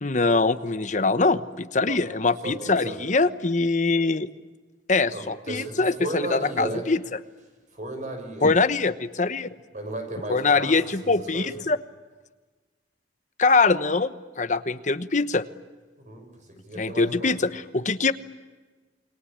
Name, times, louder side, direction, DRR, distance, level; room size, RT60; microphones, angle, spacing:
voice 1, 0.0-4.3 4.9-7.0 8.4-9.5 10.3-11.8 13.4-15.4 16.8-18.1, left 3 dB, 40° left, 12 dB, 1.1 m, -23 dB
voice 2, 2.4-3.0 5.1-6.9 7.7-8.5 9.7-10.7 11.0-11.5 16.0-17.3, right 1 dB, 40° right, 5 dB, 6.7 m, -34 dB
29.0 x 22.5 x 8.7 m, 1.3 s
head